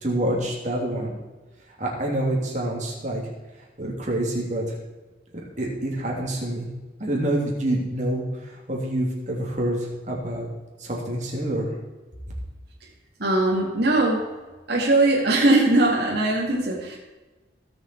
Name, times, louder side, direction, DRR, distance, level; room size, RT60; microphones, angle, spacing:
voice 1, 0.0-1.1 1.8-3.2 3.8-4.7 5.6-6.7 7.0-10.5 10.8-11.7, right 1 dB, 40° right, -2 dB, 3.2 m, -27 dB
voice 2, 13.2-14.3 14.7-17.0, right 2 dB, 60° right, -4 dB, 2.3 m, -20 dB
18.5 x 7.0 x 4.7 m, 1.2 s
head